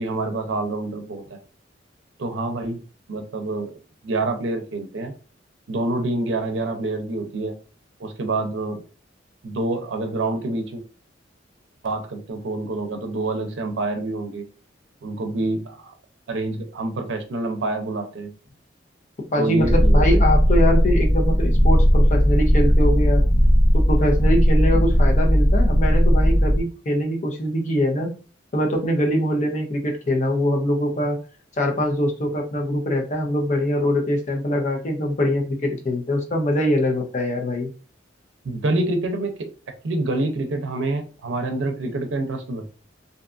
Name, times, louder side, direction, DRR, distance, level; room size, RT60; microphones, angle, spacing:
voice 1, 0.0-1.4 2.2-2.8 3.1-3.7 4.0-5.1 5.7-7.5 8.0-8.8 9.4-10.8 11.8-14.5 15.0-15.9 16.3-18.3 19.4-20.2 24.7-24.8 38.4-39.3 39.8-42.8, right 2 dB, 85° right, 5 dB, 0.5 m, -27 dB
voice 2, 19.3-23.2 23.7-28.1 28.5-31.2 31.6-37.7, equal, 40° left, 2 dB, 0.6 m, -23 dB
Purr, 19.6-26.6, equal, 5° right, 1.0 m, -17 dB
2.6 x 2.3 x 2.4 m, 0.35 s
head